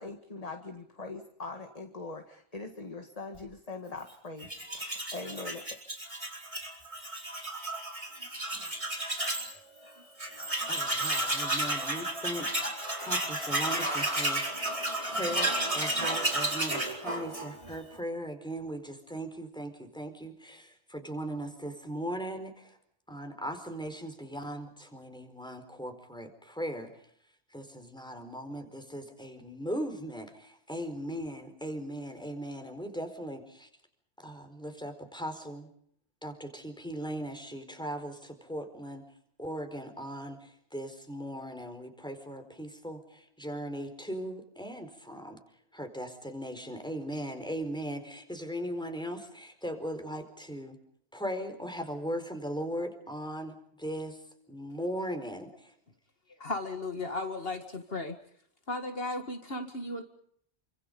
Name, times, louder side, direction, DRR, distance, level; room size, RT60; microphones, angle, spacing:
voice 1, 0.0-5.7, left 3 dB, 35° left, 5 dB, 2.1 m, -42 dB
Tools, 4.4-9.5 9.9-10.0 10.2-17.8, right 1 dB, 30° right, 4.6 m, -32 dB
voice 2, 10.7-12.5 13.0-14.4 15.2-22.7 23.1-26.9 27.5-33.7 34.2-35.7 36.2-39.0 39.4-45.4 45.7-50.8 51.1-54.2 54.5-55.7, equal, 5° left, 6 dB, 4.5 m, -38 dB
voice 3, 56.4-58.2 58.7-60.0, left 2 dB, 60° left, 6 dB, 2.2 m, -35 dB
29.0 x 26.0 x 5.4 m, 0.66 s
omnidirectional pair, 1.1 m